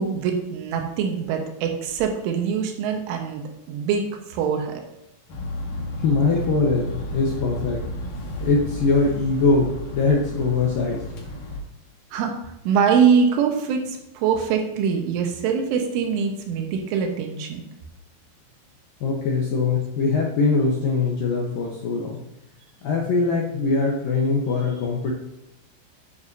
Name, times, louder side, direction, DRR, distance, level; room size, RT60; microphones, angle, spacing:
voice 1, 0.0-4.0 4.3-4.7 12.1-12.4 12.7-17.6, right 6 dB, 80° right, 3 dB, 3.6 m, -23 dB
sound 1, 5.3-11.6, left 1 dB, 55° left, 2.7 m, -32 dB
voice 2, 6.0-7.8 8.4-11.0 19.0-22.2 22.8-25.1, left 3 dB, 75° left, -1 dB, 2.1 m, -22 dB
10.0 x 9.4 x 2.7 m, 0.87 s
omnidirectional pair, 5.6 m